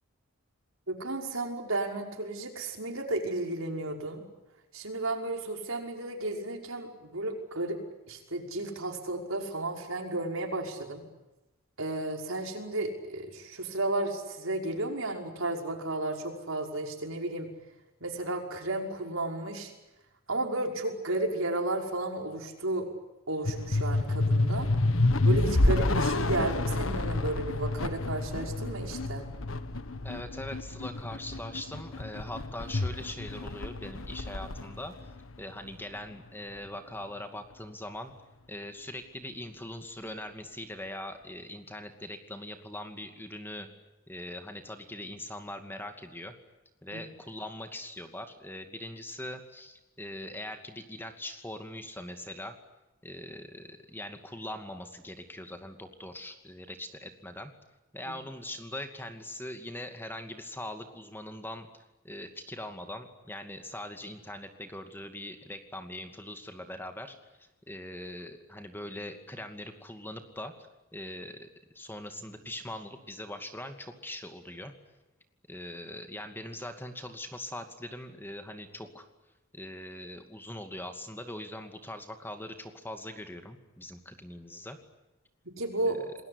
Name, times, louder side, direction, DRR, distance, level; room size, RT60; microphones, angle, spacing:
voice 1, 0.9-4.2 4.7-7.8 8.1-11.0 11.8-17.5 18.0-19.7 20.3-22.9 23.3-24.7 25.2-29.3 46.9-47.0 85.5-86.1, right 2 dB, 70° right, 3 dB, 5.7 m, -33 dB
sound 1, 23.4-36.0, left 2 dB, 70° left, 1.5 m, -29 dB
voice 2, 30.0-34.9 35.4-38.1 38.5-43.7 44.1-46.3 46.8-52.5 53.0-57.5 57.9-61.7 62.0-70.5 70.9-71.5 71.7-74.7 75.5-79.1 79.5-84.8 85.8-86.0, left 1 dB, 10° left, 6 dB, 2.4 m, -41 dB
28.0 x 21.0 x 9.9 m, 0.99 s
head